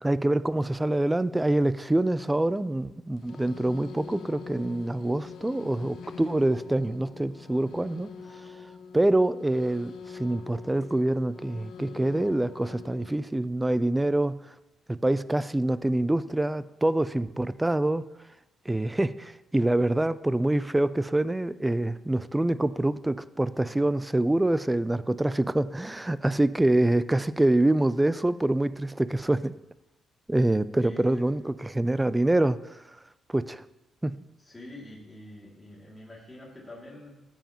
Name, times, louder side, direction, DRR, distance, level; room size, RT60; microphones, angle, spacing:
voice 1, 0.0-8.1 8.9-14.4 14.9-18.0 18.7-29.5 30.3-32.8 33.3-33.6 34.0-34.2, right 1 dB, 10° right, 16 dB, 0.3 m, -25 dB
sound 1, 3.2-13.1, left 5 dB, 75° left, 0.7 m, -44 dB
voice 2, 30.8-31.2 34.4-37.2, left 1 dB, 15° left, -5 dB, 2.4 m, -45 dB
13.0 x 7.1 x 2.9 m, 0.97 s
cardioid pair, 100°, 0 cm